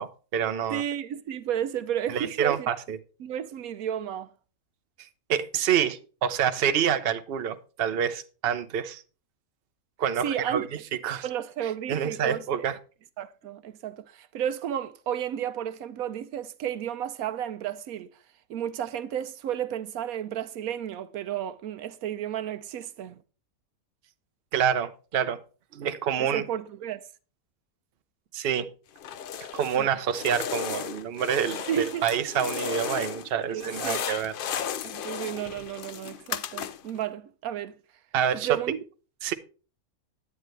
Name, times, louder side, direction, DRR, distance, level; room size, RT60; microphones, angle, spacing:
voice 1, 0.0-0.8 2.1-3.0 5.3-9.0 10.0-10.6 11.0-11.2 11.9-12.8 24.5-25.4 25.7-26.4 28.3-28.7 29.5-34.3 38.1-38.5 39.2-39.3, right 8 dB, 50° right, 0.9 m, -27 dB
voice 2, 0.7-2.8 3.2-4.3 10.2-10.7 11.2-12.7 13.2-18.1 18.5-23.2 26.2-27.1 29.7-29.9 31.6-32.0 33.5-34.1 34.8-37.7 38.4-38.8, right 10 dB, 80° right, 1.1 m, -32 dB
sound 1, 29.0-29.8 30.1-33.3 33.6-37.0, left 8 dB, 70° left, 0.5 m, -35 dB
10.0 x 9.3 x 3.3 m
omnidirectional pair, 1.5 m